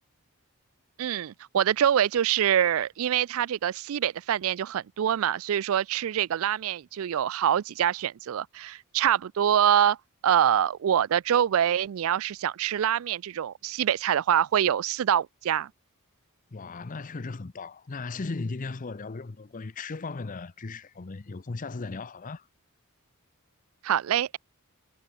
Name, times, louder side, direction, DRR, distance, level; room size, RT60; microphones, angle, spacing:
voice 1, 1.0-10.0 10.2-15.7 23.8-24.4, right 9 dB, 65° right, 0.3 m, -25 dB
voice 2, 16.5-22.5, left 3 dB, 35° left, 0.6 m, -36 dB
head